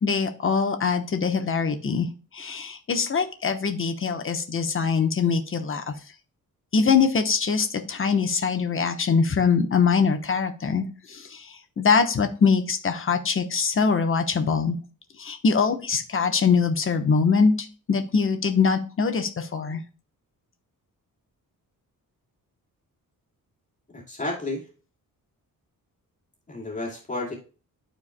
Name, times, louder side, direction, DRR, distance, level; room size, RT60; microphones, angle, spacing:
voice 1, 0.0-2.1 2.3-5.9 6.7-11.5 11.8-14.8 15.2-19.8, left 5 dB, 35° left, 7 dB, 1.0 m, -23 dB
voice 2, 23.9-24.7 26.5-27.4, left 2 dB, 20° left, -2 dB, 2.2 m, -31 dB
12.5 x 4.6 x 2.2 m, 0.36 s
wide cardioid pair, 140°, 35 cm